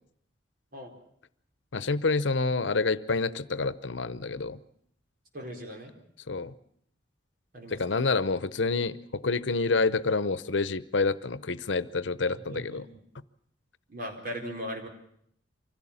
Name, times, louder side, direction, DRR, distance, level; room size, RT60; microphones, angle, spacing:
voice 1, 1.7-4.6 6.3-6.5 7.7-12.9, left 3 dB, 85° left, 16 dB, 0.8 m, -28 dB
voice 2, 5.3-5.9 7.5-8.0 12.3-12.8 13.9-14.9, equal, 50° right, 2 dB, 4.5 m, -39 dB
24.5 x 16.5 x 8.7 m, 0.70 s
head